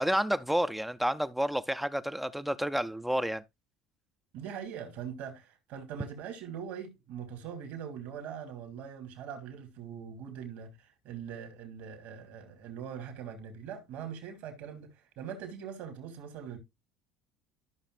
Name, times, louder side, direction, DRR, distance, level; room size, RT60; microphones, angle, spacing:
voice 1, 0.0-3.4, equal, 5° right, 0.6 m, -30 dB
voice 2, 4.3-16.6, right 8 dB, 65° right, 2.5 m, -42 dB
13.5 x 5.8 x 2.5 m
supercardioid pair, 85°, 3 cm